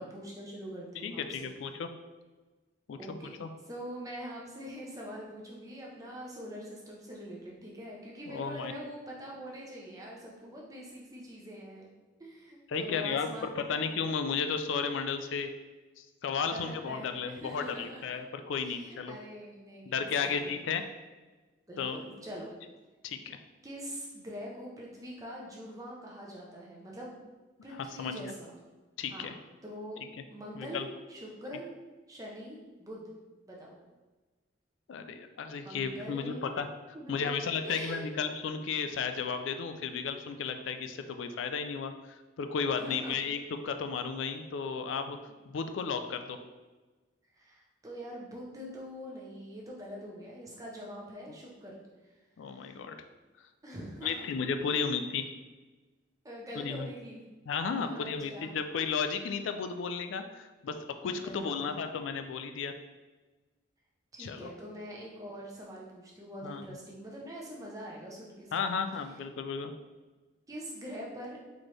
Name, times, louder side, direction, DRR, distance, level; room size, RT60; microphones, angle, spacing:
voice 1, 0.0-1.5 3.0-3.4 3.7-11.9 12.2-13.9 16.4-18.2 18.6-20.8 21.7-22.5 23.6-27.2 27.6-28.6 29.1-29.4 29.6-30.0 30.3-31.7 32.1-33.1 33.5-33.8 35.6-36.5 36.9-38.0 42.7-43.2 47.3-51.8 52.5-52.8 53.6-54.3 54.6-54.8 56.2-57.2 57.8-58.5 61.1-61.8 64.1-68.7 70.5-71.4, equal, 15° right, -3 dB, 0.7 m, -44 dB
voice 2, 1.0-1.9 2.9-3.5 8.3-8.7 12.7-15.5 16.0-19.2 19.9-20.8 21.8-22.0 23.0-23.4 28.0-28.3 29.0-29.3 30.6-30.9 34.9-36.7 37.1-45.2 45.5-46.4 52.4-53.0 54.0-55.2 56.6-56.9 57.5-62.7 64.2-64.5 66.4-66.6 68.5-69.7, left 5 dB, 80° left, 7 dB, 0.3 m, -34 dB
4.1 x 3.1 x 3.2 m, 1.2 s
head